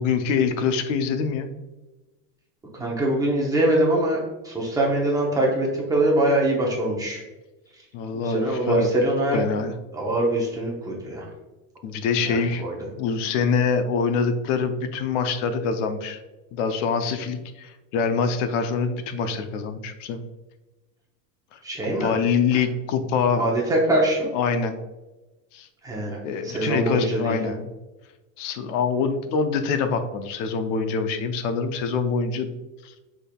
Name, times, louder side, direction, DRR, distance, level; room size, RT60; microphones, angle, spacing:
voice 1, 0.0-1.5 7.9-8.9 9.3-9.7 11.8-12.6 13.0-16.2 16.5-20.2 21.5-21.6 22.0-23.5 24.3-24.8 25.5-25.7 26.2-27.7 28.4-32.5 32.8-32.9, left 5 dB, 70° left, 8 dB, 0.6 m, -25 dB
voice 2, 2.7-7.2 7.7-7.8 8.1-9.4 9.9-11.3 12.2-12.8 21.6-22.1 22.5-22.6 23.3-24.3 25.8-27.5, right 1 dB, 10° right, -3 dB, 0.7 m, -23 dB
6.1 x 3.5 x 2.2 m, 1.1 s
supercardioid pair, 165°, 39 cm